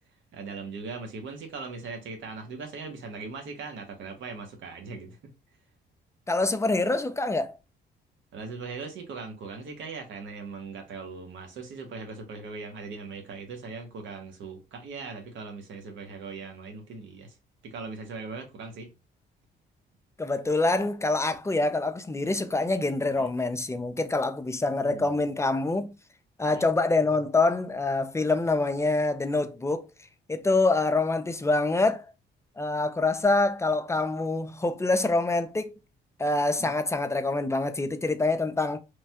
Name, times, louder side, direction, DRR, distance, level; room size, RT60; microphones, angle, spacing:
voice 1, 0.3-5.3 8.3-17.3 17.6-18.9 23.1-23.3 24.8-25.2 26.4-26.7 36.6-36.7, right 4 dB, 75° right, 0.9 m, -40 dB
voice 2, 6.3-7.6 20.2-25.9 26.4-29.9 30.3-32.0 32.6-35.7 36.2-38.8, left 2 dB, 15° left, 0.4 m, -25 dB
3.1 x 2.2 x 2.8 m
cardioid pair, 90°, 20 cm